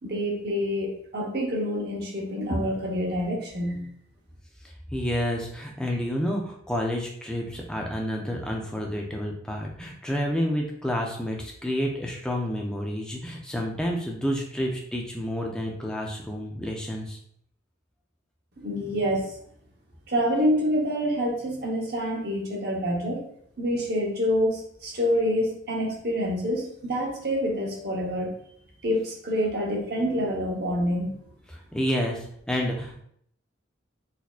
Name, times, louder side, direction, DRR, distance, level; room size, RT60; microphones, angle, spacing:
voice 1, 0.0-3.8 18.6-19.3 20.1-23.2 23.6-28.3 28.8-31.2, equal, 50° right, -2 dB, 0.9 m, -27 dB
voice 2, 4.9-17.2 31.5-33.0, equal, 5° left, -1 dB, 0.4 m, -29 dB
4.1 x 2.6 x 2.4 m, 0.66 s
head